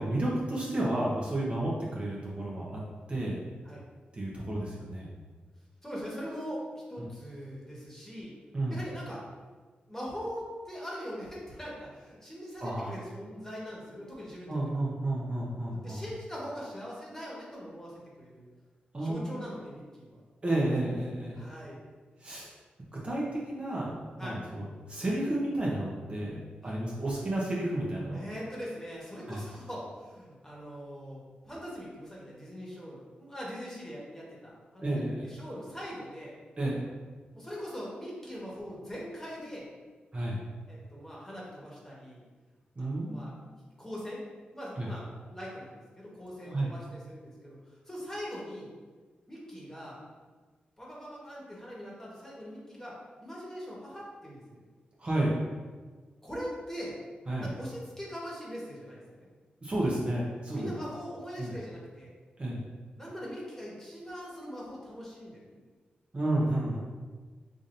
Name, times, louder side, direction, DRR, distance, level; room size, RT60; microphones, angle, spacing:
voice 1, 0.0-2.8 3.1-3.4 4.1-5.1 7.0-7.1 8.5-8.8 12.6-12.9 14.5-16.0 18.9-19.2 20.4-21.4 22.2-22.5 22.9-26.4 26.6-28.2 29.3-29.4 34.8-35.3 36.6-36.8 40.1-40.4 42.8-43.5 44.8-44.9 46.4-46.7 55.0-55.5 57.3-57.5 59.6-60.7 61.4-61.5 62.4-62.6 66.1-66.8, right 1 dB, 35° right, -5 dB, 0.9 m, -31 dB
voice 2, 5.8-6.6 6.9-8.3 8.7-9.2 9.9-14.8 15.7-18.4 19.0-20.2 21.2-21.8 24.2-24.4 26.6-26.8 28.1-36.3 37.3-39.7 40.7-42.2 42.8-44.2 44.5-47.6 47.9-48.7 49.3-50.0 50.8-52.9 53.2-54.6 56.2-57.0 57.4-59.3 60.5-62.1 63.0-65.6, equal, 15° left, -5 dB, 1.3 m, -42 dB
4.9 x 2.7 x 2.6 m, 1.4 s
cardioid pair, 60°, 3 cm